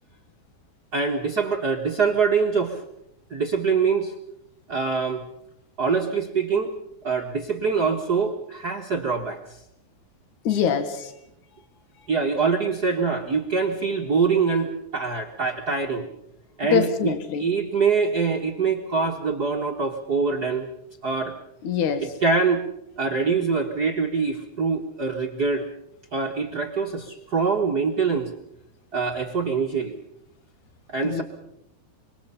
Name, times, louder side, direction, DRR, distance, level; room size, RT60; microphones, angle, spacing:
voice 1, 0.9-2.8 3.3-4.1 4.7-5.2 5.8-6.7 7.0-9.4 12.1-16.1 16.6-20.7 21.0-21.3 22.0-22.6 23.0-25.7 26.1-28.3 28.9-30.0 30.9-31.2, right 5 dB, 45° right, 1 dB, 1.4 m, -24 dB
voice 2, 10.4-11.1 16.7-17.4 21.6-22.1 31.0-31.2, left 8 dB, 75° left, 9 dB, 3.0 m, -24 dB
25.5 x 23.0 x 5.6 m, 0.78 s
omnidirectional pair, 3.5 m